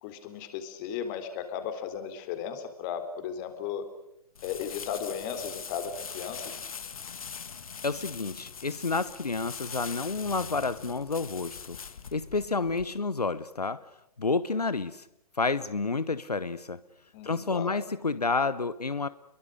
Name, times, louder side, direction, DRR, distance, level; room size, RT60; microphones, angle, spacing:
voice 1, 0.0-3.8 4.4-6.6 17.1-17.7, left 8 dB, 30° left, 9 dB, 4.0 m, -35 dB
sound 1, 4.3-12.8, left 6 dB, 65° left, 2.2 m, -42 dB
voice 2, 7.8-11.8 12.1-13.8 14.2-15.1 15.4-16.8 17.2-19.1, left 4 dB, 85° left, 15 dB, 1.1 m, -30 dB
29.0 x 23.0 x 6.6 m, 0.81 s
figure-of-eight pair, 125°, 19 cm